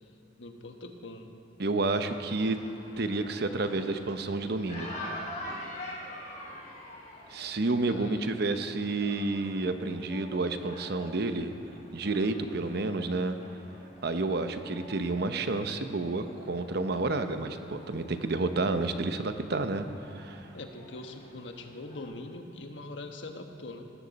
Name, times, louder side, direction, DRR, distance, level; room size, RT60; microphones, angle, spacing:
voice 1, 0.4-1.3 7.8-8.3 20.5-23.9, left 2 dB, 85° left, 4 dB, 1.3 m, -42 dB
voice 2, 1.6-2.6 3.0-4.9 7.3-11.5 11.9-13.4 14.0-19.9 20.1-20.5, right 3 dB, 60° right, 8 dB, 0.8 m, -30 dB
sound 1, 2.2-22.0, left 1 dB, 45° left, 3.6 m, -46 dB
18.0 x 14.5 x 4.1 m, 2.5 s
head